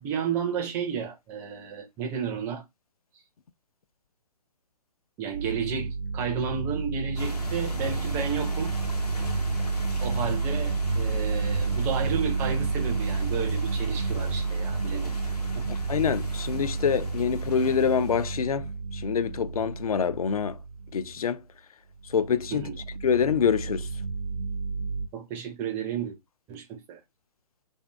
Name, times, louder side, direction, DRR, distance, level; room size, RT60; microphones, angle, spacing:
voice 1, 0.0-2.6 5.2-8.7 10.0-15.1 15.6-15.7 22.5-22.8 25.1-26.2 26.5-27.0, right 7 dB, 10° right, 0.4 m, -32 dB
sound 1, 5.3-21.2 21.9-25.1, right 4 dB, 65° right, 0.5 m, -30 dB
sound 2, 7.2-18.3, left 3 dB, 85° left, 0.9 m, -40 dB
voice 2, 15.9-20.6 20.9-21.4 22.0-22.7 23.0-23.9, left 7 dB, 65° left, 0.4 m, -26 dB
2.5 x 2.5 x 2.2 m
figure-of-eight pair, 130°, 20 cm